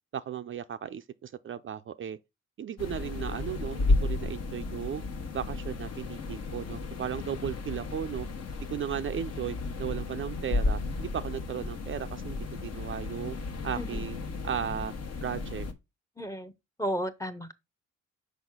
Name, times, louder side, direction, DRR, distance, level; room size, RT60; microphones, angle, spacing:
voice 1, 0.1-2.2 2.6-5.0 5.3-8.3 8.7-13.4 13.6-14.2 14.4-14.9 15.2-15.7, right 9 dB, 40° right, 0.4 m, -35 dB
sound 1, 2.8-15.7, left 3 dB, 55° left, 1.1 m, -33 dB
voice 2, 16.2-16.5 16.8-17.5, equal, 10° left, 0.7 m, -33 dB
6.1 x 4.8 x 3.6 m
cardioid pair, 90°, 30 cm